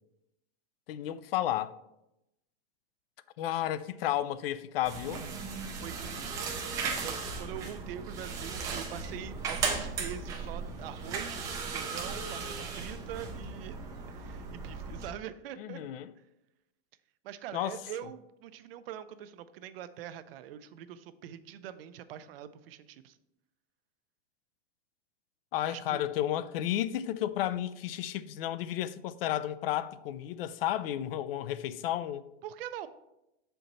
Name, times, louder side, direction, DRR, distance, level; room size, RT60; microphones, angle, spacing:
voice 1, 0.9-1.7 3.4-5.2 15.6-16.1 17.5-17.8 25.5-32.2, left 12 dB, 70° left, 0.4 m, -32 dB
sound 1, 4.9-15.1, right 4 dB, 10° right, 0.3 m, -36 dB
voice 2, 5.8-11.4 11.7-13.8 14.1-15.8 17.2-23.2 25.7-26.0 32.4-32.9, right 10 dB, 75° right, 0.6 m, -44 dB
6.3 x 4.5 x 4.0 m
supercardioid pair, 175°, 30 cm